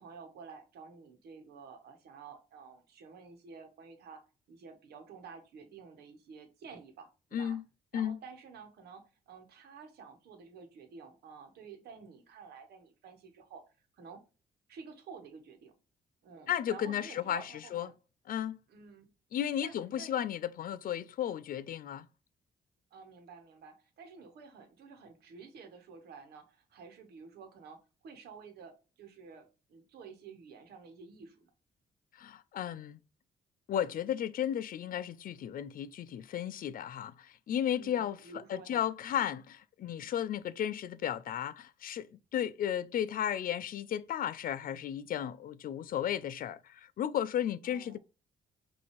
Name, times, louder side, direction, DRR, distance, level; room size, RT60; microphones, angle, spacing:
voice 1, 0.0-4.2 4.5-7.6 7.9-13.6 13.9-14.2 14.7-15.7 16.2-17.9 18.7-19.1 19.6-20.1 22.9-31.5 37.8-38.9 47.6-48.0, right 5 dB, 90° right, 1.1 m, -51 dB
voice 2, 16.5-17.9 18.3-18.6 19.3-22.1 32.2-33.0 33.7-38.2 38.5-42.1 42.3-48.0, left 10 dB, 60° left, 0.4 m, -34 dB
5.6 x 2.7 x 3.1 m
cardioid pair, 95°, 16 cm